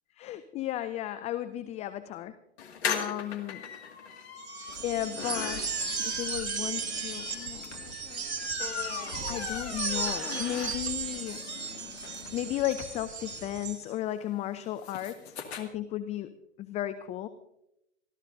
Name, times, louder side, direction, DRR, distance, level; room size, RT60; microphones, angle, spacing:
voice 1, 0.2-2.3 2.8-3.6 4.8-8.6 8.9-9.0 9.3-11.4 12.3-16.3 16.6-17.3, left 13 dB, 20° left, 12 dB, 0.5 m, -35 dB
sound 1, 2.6-11.2 11.6-11.7 11.9-12.0 12.2-15.6, left 7 dB, 60° left, 2.2 m, -39 dB
sound 2, 4.4-13.8, right 5 dB, 65° right, 2.0 m, -36 dB
sound 3, 4.7-13.7, left 3 dB, 85° left, 2.0 m, -47 dB
26.5 x 13.0 x 2.6 m, 0.83 s
figure-of-eight pair, 100°, 36 cm